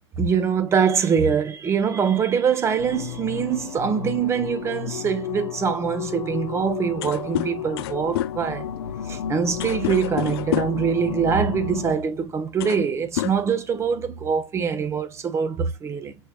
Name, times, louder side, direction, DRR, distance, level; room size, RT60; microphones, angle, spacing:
voice 1, 0.2-8.7 9.1-16.1, right 6 dB, 15° right, 0.8 m, -23 dB
sound 1, 2.8-11.9, left 8 dB, 80° left, 0.9 m, -33 dB
sound 2, 6.6-6.7 6.9-10.9 11.9-12.1 12.4-12.9 13.1-14.0, left 14 dB, 55° left, 0.4 m, -29 dB
6.3 x 3.0 x 2.3 m
hypercardioid pair, 125°, 15 cm